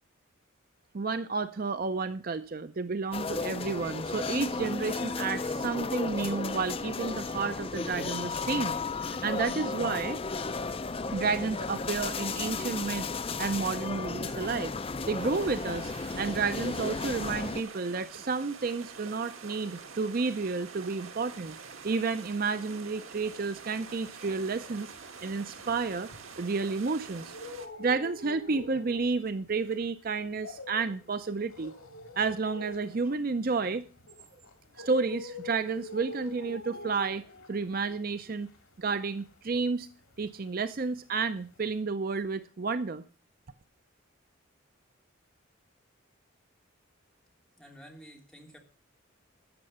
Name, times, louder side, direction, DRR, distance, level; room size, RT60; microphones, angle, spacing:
voice 1, 0.9-10.2 11.1-13.1 13.4-14.7 15.1-21.6 21.8-24.9 25.2-26.1 26.4-27.3 27.8-31.7 32.2-33.9 34.8-37.2 37.5-38.5 38.8-39.9 40.2-43.0, right 4 dB, 45° right, 12 dB, 0.5 m, -31 dB
sound 1, 3.1-17.6, left 4 dB, 25° left, 0.5 m, -34 dB
sound 2, 15.2-27.7, right 5 dB, 80° right, 1.8 m, -46 dB
sound 3, 23.4-26.7 27.1-40.5 40.7-41.8, left 2 dB, 85° left, 2.2 m, -46 dB
voice 2, 47.5-48.6, equal, 5° left, 0 dB, 3.0 m, -51 dB
13.0 x 8.8 x 5.5 m, 0.39 s
head